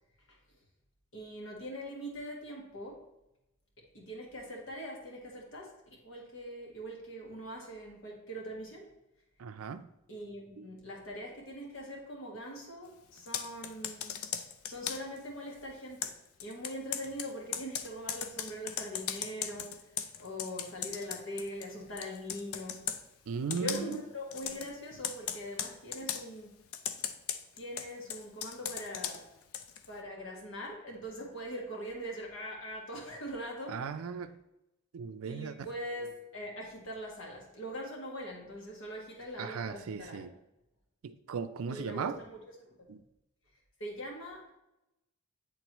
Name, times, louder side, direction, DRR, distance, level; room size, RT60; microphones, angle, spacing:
voice 1, 1.1-3.0 3.9-8.9 10.1-14.2 14.6-16.1 16.4-22.8 23.5-26.6 27.6-29.3 29.9-34.0 35.2-40.2 41.7-42.7 43.8-44.5, equal, 60° left, -1 dB, 1.6 m, -42 dB
voice 2, 9.4-9.8 10.6-10.7 23.3-24.0 33.7-34.3 34.9-35.5 39.4-40.3 41.0-42.2 42.9-43.0, right 5 dB, 75° right, 11 dB, 0.4 m, -37 dB
Computer keyboard, 13.2-15.2 16.0-21.7 22.0-23.0 23.5-24.0 24.3-24.7 25.0-26.2 26.7-29.9, left 8 dB, 80° left, 0.5 m, -38 dB
9.2 x 3.8 x 3.0 m, 0.90 s
head